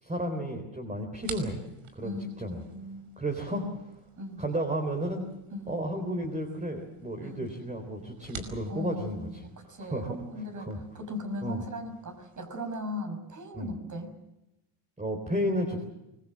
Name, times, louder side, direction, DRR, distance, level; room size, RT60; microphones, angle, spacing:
voice 1, 0.0-1.6 2.0-2.6 3.2-4.0 4.4-5.2 5.7-10.2 10.6-10.8 11.4-11.6 13.5-13.7 15.0-15.8, equal, 15° right, 4 dB, 3.8 m, -33 dB
sound 1, 1.2-12.8, right 6 dB, 65° right, 5.4 m, -50 dB
voice 2, 2.0-3.1 4.2-4.4 5.5-5.9 7.2-7.5 8.7-10.7 10.9-14.2, left 1 dB, 35° right, 7 dB, 5.8 m, -38 dB
24.5 x 21.0 x 7.6 m, 0.90 s
cardioid pair, 105°, 50 cm